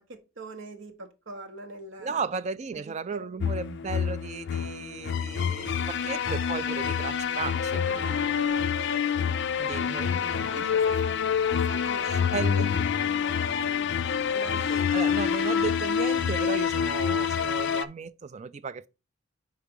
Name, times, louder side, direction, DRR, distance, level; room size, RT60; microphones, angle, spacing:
voice 1, 0.0-2.2 2.7-3.2 7.8-9.4 9.6-9.7 10.4-11.2 11.5-12.7 12.9-13.9 14.3-14.9, right 2 dB, 60° right, 0.9 m, -42 dB
voice 2, 2.0-7.8 9.6-10.5 12.0-12.8 14.7-18.9, right 5 dB, 30° right, 0.3 m, -35 dB
sound 1, 3.4-17.8, left 7 dB, 55° left, 0.4 m, -27 dB
4.7 x 4.6 x 5.2 m
head